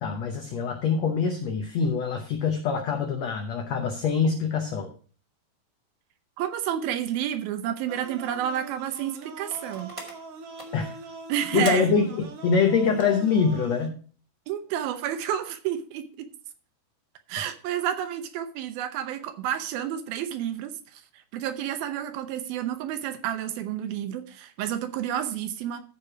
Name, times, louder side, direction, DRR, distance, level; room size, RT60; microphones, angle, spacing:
voice 1, 0.0-4.9 10.7-10.9 11.5-14.0 17.4-17.5, left 5 dB, 85° left, 4 dB, 1.5 m, -24 dB
voice 2, 6.4-9.9 11.3-11.9 14.5-16.3 17.3-21.0 21.3-25.8, right 10 dB, 80° right, 9 dB, 2.6 m, -30 dB
sound 1, 7.9-13.9, right 4 dB, 65° right, 1.5 m, -42 dB
sound 2, 9.5-10.9 11.1-11.2 11.5-11.8 12.3-12.5 12.9-13.2 15.1-15.2, right 1 dB, 25° right, 0.7 m, -40 dB
14.0 x 4.8 x 4.8 m, 0.41 s
omnidirectional pair, 4.4 m